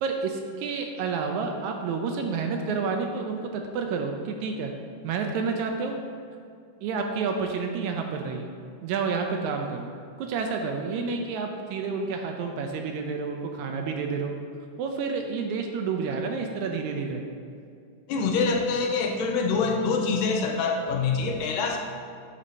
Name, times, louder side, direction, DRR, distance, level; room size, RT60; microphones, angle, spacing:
voice 1, 0.0-4.7 5.0-6.0 6.8-8.5 8.8-9.9 10.2-14.3 14.8-17.2, right 5 dB, 80° right, 3 dB, 1.8 m, -29 dB
voice 2, 18.1-21.8, left 4 dB, 85° left, 1 dB, 2.5 m, -25 dB
9.7 x 8.2 x 2.7 m, 2.4 s
omnidirectional pair, 3.8 m